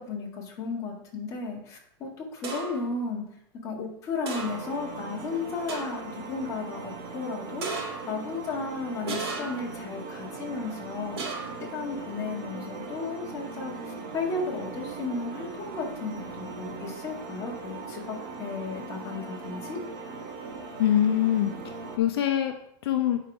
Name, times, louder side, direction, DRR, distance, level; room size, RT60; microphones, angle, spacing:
voice 1, 0.0-3.2 3.6-11.4 11.7-19.8, left 4 dB, 25° left, -3 dB, 1.8 m, -34 dB
sound 1, 2.4-2.9 4.3-4.8 5.2-5.3 5.7-6.1 7.6-8.2 9.1-9.7 11.2-11.7, right 3 dB, 75° right, 3.0 m, -35 dB
sound 2, 4.4-22.0, right 4 dB, 50° right, 1.7 m, -40 dB
voice 2, 20.8-22.5 22.8-23.2, left 11 dB, 70° left, 5 dB, 0.9 m, -24 dB
8.7 x 5.0 x 4.9 m, 0.74 s
supercardioid pair, 170°, 13 cm